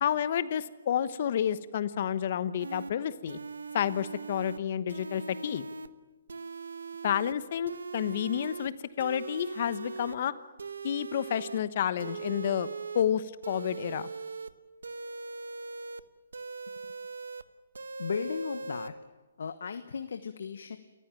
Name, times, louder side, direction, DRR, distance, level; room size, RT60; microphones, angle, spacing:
voice 1, 0.0-3.4 3.7-5.6 7.0-10.3 10.8-12.7 12.9-14.1, left 9 dB, 50° left, 15 dB, 1.1 m, -30 dB
sound 1, 2.6-2.9 3.3-4.6 4.9-5.9 6.3-7.3 7.7-8.7 9.0-10.2 10.6-11.6 12.0-13.0 13.4-14.5 14.8-16.0 16.3-17.4 17.7-18.9, right 4 dB, 90° right, 1.2 m, -40 dB
voice 2, 18.0-18.9 19.4-20.8, left 6 dB, 75° left, 9 dB, 1.2 m, -35 dB
28.5 x 15.0 x 9.1 m, 1.2 s
hypercardioid pair, 150°, 0 cm